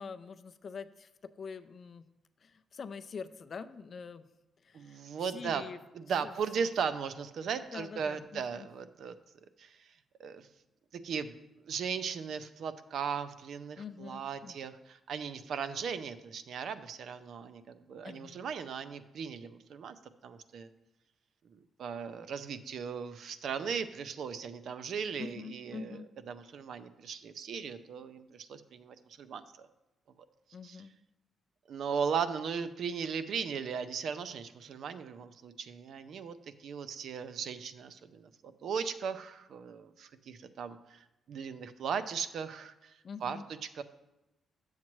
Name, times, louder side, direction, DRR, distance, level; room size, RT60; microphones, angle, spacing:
voice 1, 0.0-2.0 2.4-4.2 4.6-5.1 5.3-5.8 6.2-6.3 7.7-8.7 13.8-14.6 18.0-18.4 25.2-26.1 30.5-30.9 43.0-43.4, left 5 dB, 40° left, 11 dB, 0.4 m, -44 dB
voice 2, 4.7-5.6 5.9-9.1 9.6-10.5 10.9-11.3 11.6-20.0 20.2-20.7 21.5-29.7 30.6-30.9 31.7-43.4 43.7-43.8, right 6 dB, 65° right, 11 dB, 0.5 m, -37 dB
10.5 x 7.3 x 3.0 m, 0.97 s
cardioid pair, 150°, 0 cm